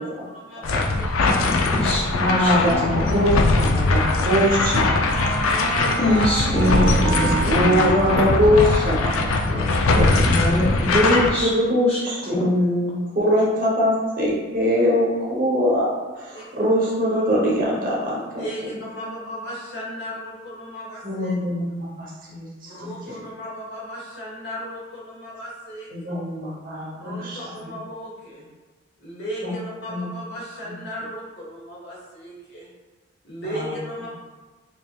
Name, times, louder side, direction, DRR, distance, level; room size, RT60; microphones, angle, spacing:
voice 1, 0.0-1.2 4.0-4.5 5.1-6.1 9.5-10.6 13.2-13.4 16.3-16.4 18.1-21.3 22.7-26.1 27.0-28.5 29.0-32.7 33.2-34.1, equal, 50° left, -6 dB, 1.3 m, -36 dB
sound 1, 0.6-11.3, left 3 dB, 85° left, 0.4 m, -21 dB
voice 2, 1.2-2.5 2.8-3.0 6.0-7.8 10.2-10.9 11.3-11.5 11.9-12.0 12.3-12.5, left 1 dB, 30° left, -7 dB, 0.5 m, -24 dB
voice 3, 2.2-5.0 7.4-9.6 9.9-10.1 10.8-15.9 16.1-18.5 21.0-22.9 25.9-27.7 29.4-29.5 29.9-30.1 30.6-30.7 33.5-33.7, equal, 40° right, -5 dB, 0.9 m, -22 dB
Wind instrument woodwind instrument, 4.1-10.8, right 5 dB, 60° right, 0.4 m, -31 dB
5.1 x 2.9 x 2.3 m, 1.3 s
head